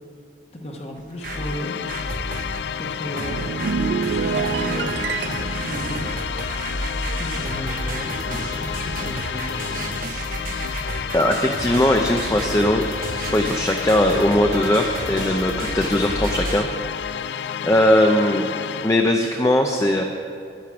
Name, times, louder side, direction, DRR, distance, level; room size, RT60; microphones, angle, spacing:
voice 1, 0.5-1.8 2.8-3.5 4.1-6.1 7.2-9.9, equal, 35° left, 1 dB, 1.1 m, -34 dB
sound 1, 1.0-2.7 3.2-16.6, right 2 dB, 50° right, 0.9 m, -31 dB
sound 2, 1.2-19.1, left 8 dB, 75° left, 0.3 m, -30 dB
sound 3, 3.1-7.7 8.0-8.3, right 5 dB, 75° right, 0.3 m, -28 dB
voice 2, 11.1-12.8 13.2-17.3 17.6-18.5 18.8-20.0, left 1 dB, 15° left, 3 dB, 0.5 m, -20 dB
10.5 x 10.0 x 5.9 m, 2.4 s
head